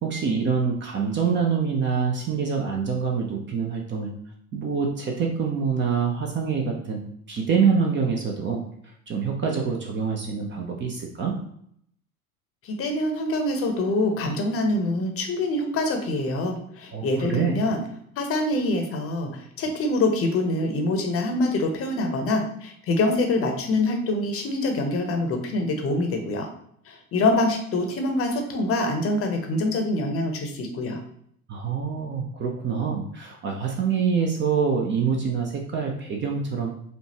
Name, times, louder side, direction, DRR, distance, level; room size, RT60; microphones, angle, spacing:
voice 1, 0.0-4.1 4.5-8.6 9.1-11.4 16.9-17.7 31.5-36.7, right 6 dB, 25° right, 1 dB, 0.6 m, -25 dB
voice 2, 12.6-17.8 18.2-26.5 26.9-31.0, left 2 dB, 30° left, 4 dB, 0.8 m, -25 dB
5.1 x 2.3 x 2.8 m, 0.68 s
figure-of-eight pair, 75°, 44 cm